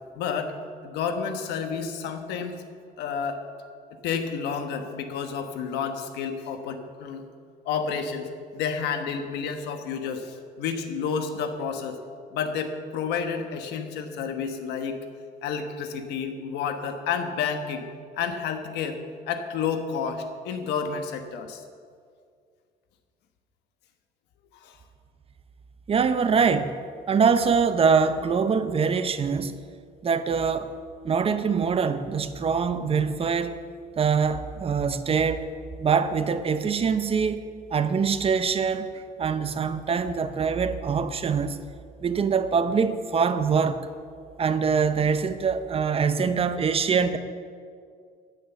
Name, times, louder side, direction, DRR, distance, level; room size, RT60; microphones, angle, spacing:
voice 1, 0.2-0.5 0.8-2.5 3.0-3.4 4.0-7.2 7.6-8.2 8.5-11.9 12.3-14.9 15.4-17.8 18.2-19.0 19.3-21.6 24.6-24.7, left 6 dB, 85° left, 6 dB, 1.2 m, -30 dB
voice 2, 25.9-26.8 27.1-29.5 30.0-30.7 31.0-33.6 34.0-35.5 35.8-37.4 37.7-41.6 42.0-43.8 44.4-47.2, right 6 dB, 35° right, 11 dB, 0.7 m, -24 dB
9.8 x 9.2 x 7.1 m, 2.1 s
cardioid pair, 110°, 17 cm